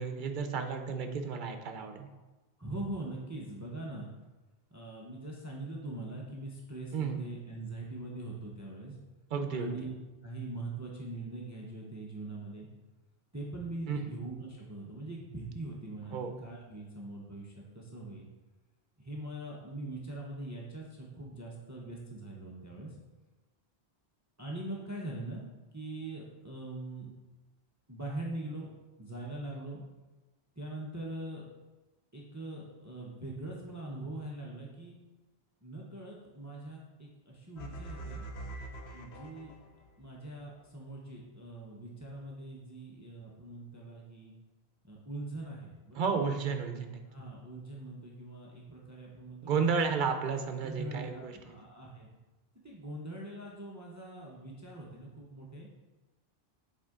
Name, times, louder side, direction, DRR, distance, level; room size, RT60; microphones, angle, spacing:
voice 1, 0.0-2.1 6.9-7.2 9.3-9.7 13.9-14.1 16.1-16.3 45.9-47.0 49.4-51.6, right 5 dB, 55° right, 6 dB, 0.8 m, -32 dB
voice 2, 2.6-4.1 4.7-9.0 9.5-9.9 10.2-12.7 13.3-18.3 19.0-23.0 24.4-25.4 25.7-27.1 27.9-28.7 29.0-29.8 30.6-31.4 32.1-35.0 35.6-38.2 38.9-39.5 40.0-44.3 44.8-46.2 47.0-49.8 50.6-52.1 52.6-55.7, right 2 dB, 20° right, -3 dB, 0.8 m, -42 dB
sound 1, 37.6-40.0, right 2 dB, 85° left, 0.9 m, -44 dB
7.9 x 4.5 x 3.6 m, 1.2 s
omnidirectional pair, 1.1 m